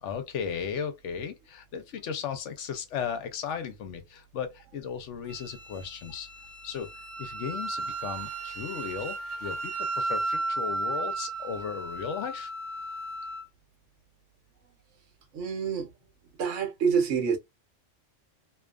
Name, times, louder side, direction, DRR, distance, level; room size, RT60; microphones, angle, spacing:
voice 1, 0.0-6.3 6.6-6.9 7.2-12.5 12.9-13.0, left 7 dB, 70° left, 0.9 m, -36 dB
Wind instrument woodwind instrument, 5.3-13.5, right 2 dB, 35° right, 0.5 m, -35 dB
voice 2, 15.3-15.9 16.4-17.4, right 6 dB, 75° right, 1.1 m, -27 dB
2.6 x 2.3 x 2.3 m
omnidirectional pair, 1.3 m